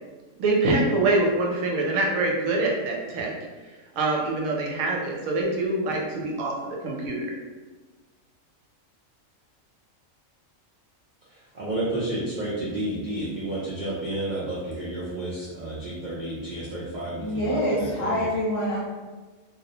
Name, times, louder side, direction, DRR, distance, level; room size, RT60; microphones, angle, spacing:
voice 1, 0.4-3.3 4.0-7.3, right 2 dB, 80° right, -1 dB, 1.0 m, -25 dB
voice 2, 11.5-18.3, right 1 dB, 60° right, -8 dB, 0.4 m, -31 dB
voice 3, 17.2-18.8, equal, 55° left, -6 dB, 0.9 m, -26 dB
2.4 x 2.0 x 2.8 m, 1.3 s
omnidirectional pair, 1.4 m